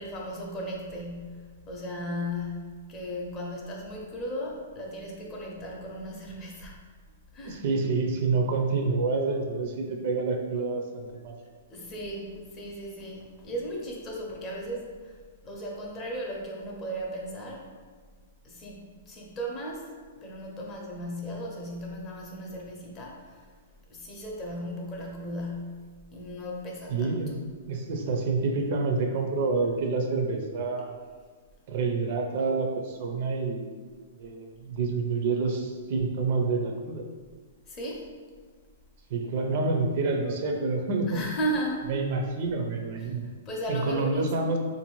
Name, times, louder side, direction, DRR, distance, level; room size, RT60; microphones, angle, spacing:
voice 1, 0.0-6.8 7.3-7.6 11.7-15.1 15.4-17.7 18.4-19.9 20.2-23.5 23.9-27.1 37.7-38.1 41.1-41.9 43.5-44.3, equal, 20° left, -2 dB, 0.5 m, -36 dB
voice 2, 7.4-11.4 26.9-27.4 27.7-30.9 31.7-33.7 34.2-37.0 39.1-41.3 41.9-43.2 43.7-44.6, right 3 dB, 45° right, 2 dB, 0.4 m, -28 dB
3.7 x 2.5 x 3.0 m, 1.5 s
hypercardioid pair, 165°, 0 cm